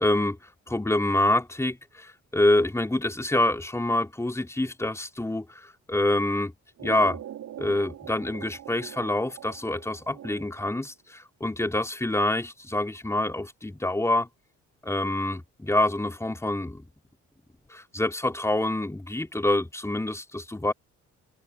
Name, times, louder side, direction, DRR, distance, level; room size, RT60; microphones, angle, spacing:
voice 1, 0.0-6.5 6.8-7.2 7.6-14.3 14.8-16.8 17.7-20.7, left 1 dB, 10° left, 3.7 m, -26 dB
sound 1, 6.8-10.8, right 11 dB, 70° right, 6.4 m, -42 dB
cardioid pair, 90°, 30 cm